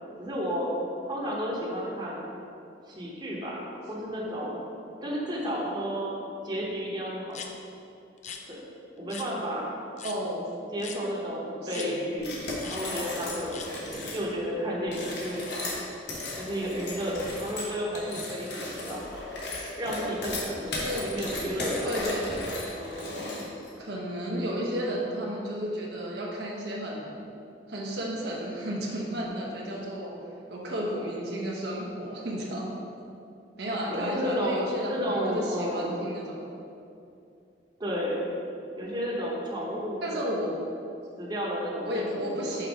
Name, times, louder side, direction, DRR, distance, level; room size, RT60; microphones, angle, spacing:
voice 1, 0.2-0.7 1.0-2.2 2.8-4.6 5.0-6.1 6.4-7.4 8.5-8.7 9.0-9.7 10.7-15.4 16.4-19.1 19.7-22.0 22.7-23.4 33.9-34.6 34.9-36.0 37.8-38.2 38.8-40.4 41.2-42.7, equal, 25° right, -5 dB, 1.0 m, -32 dB
sound 1, 7.3-7.5 8.2-8.4 9.1-9.3 10.0-10.2 10.8-11.0 11.7-11.9 12.6-12.8 13.5-13.7, left 7 dB, 40° left, 0.4 m, -40 dB
voice 2, 10.0-10.5 11.6-12.0 20.7-21.1 21.8-22.6 23.8-27.1 27.7-30.1 30.5-32.7 33.6-36.4 40.0-40.6 41.8-42.7, equal, 65° right, -3 dB, 0.9 m, -33 dB
sound 2, 12.2-14.2 14.8-23.7, left 2 dB, 70° left, 1.2 m, -36 dB
5.3 x 3.9 x 5.2 m, 2.6 s
head